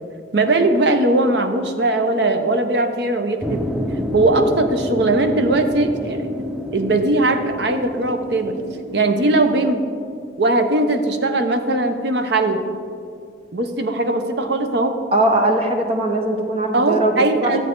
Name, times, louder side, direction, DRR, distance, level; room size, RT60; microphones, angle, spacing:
voice 1, 0.3-3.6 4.1-6.3 6.7-8.6 8.9-9.8 10.4-12.6 13.5-15.0 16.7-17.6, right 2 dB, 60° right, 7 dB, 0.7 m, -19 dB
sound 1, 3.4-9.7, left 1 dB, 5° right, 0.4 m, -29 dB
voice 2, 15.1-17.6, right 1 dB, 30° right, 4 dB, 0.9 m, -20 dB
11.5 x 8.2 x 3.8 m, 2.2 s
head